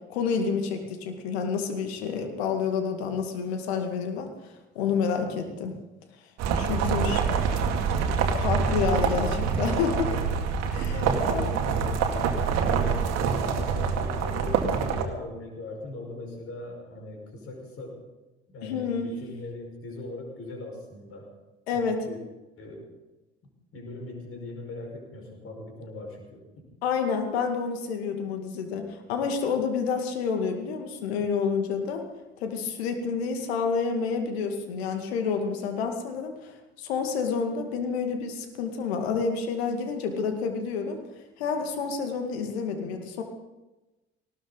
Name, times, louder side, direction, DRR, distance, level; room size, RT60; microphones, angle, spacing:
voice 1, 0.1-4.3 4.8-5.7 6.5-7.4 8.4-10.1 10.7-11.0 11.3-11.5 18.6-19.1 21.7-22.0 26.8-32.0 32.4-41.0 41.4-43.2, left 5 dB, 65° left, 5 dB, 2.2 m, -29 dB
sound 1, 6.4-15.0, right 6 dB, 50° right, 2.0 m, -26 dB
voice 2, 10.9-12.1 12.6-18.1 18.5-21.3 21.7-22.2 22.6-22.9 23.7-26.4, left 2 dB, 40° left, 1 dB, 5.4 m, -40 dB
19.0 x 17.5 x 4.0 m, 1.1 s
figure-of-eight pair, 55°, 33 cm